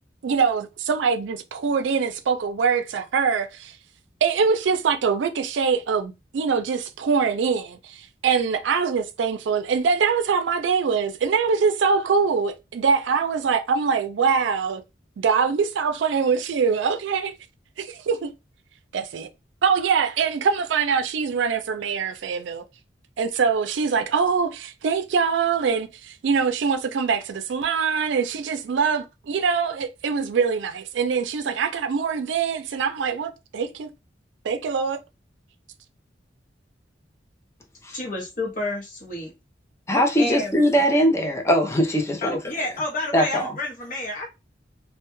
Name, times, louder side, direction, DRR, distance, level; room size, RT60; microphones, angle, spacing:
voice 1, 0.2-3.8 4.2-14.8 15.2-17.3 17.8-18.3 18.9-19.3 19.6-22.6 23.2-33.9 34.4-35.0, right 5 dB, 90° right, 0.4 m, -23 dB
voice 2, 37.9-39.3 40.2-40.6 42.2-44.3, left 2 dB, 50° left, 0.7 m, -29 dB
voice 3, 39.9-42.4 43.1-43.5, equal, 15° left, 0.4 m, -21 dB
2.1 x 2.1 x 2.9 m
head